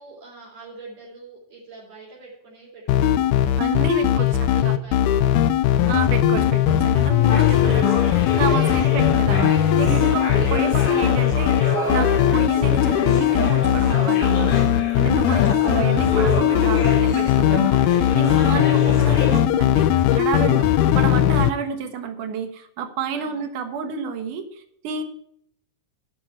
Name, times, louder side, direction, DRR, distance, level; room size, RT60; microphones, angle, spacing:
voice 1, 0.0-3.6 3.9-5.3 5.6-6.0 8.8-9.0 15.3-16.0 16.8-17.0 18.4-19.0 21.8-22.0 23.2-23.5, right 3 dB, 55° right, -5 dB, 4.7 m, -44 dB
sound 1, 2.9-21.5, left 11 dB, 90° left, 2.1 m, -19 dB
voice 2, 3.6-4.8 5.9-20.7 20.9-25.0, right 6 dB, 80° right, 7 dB, 2.9 m, -30 dB
sound 2, 7.3-19.4, left 2 dB, 45° left, 3.8 m, -29 dB
11.5 x 8.6 x 4.5 m, 0.72 s
omnidirectional pair, 3.6 m